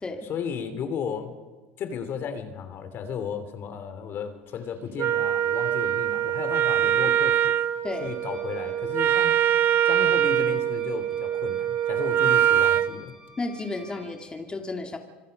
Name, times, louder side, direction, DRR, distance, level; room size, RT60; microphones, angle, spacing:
voice 1, 0.2-1.3 1.8-7.5 8.0-9.4 9.8-13.1, left 7 dB, 50° left, 9 dB, 2.9 m, -34 dB
Wind instrument woodwind instrument, 5.0-12.9, right 10 dB, 45° right, 1.1 m, -23 dB
sound 1, 7.9-14.3, right 3 dB, ahead, 7.8 m, -49 dB
voice 2, 13.4-15.0, left 3 dB, 20° left, 3 dB, 2.7 m, -32 dB
26.5 x 21.0 x 5.4 m, 1.3 s
supercardioid pair, 95°, 5 cm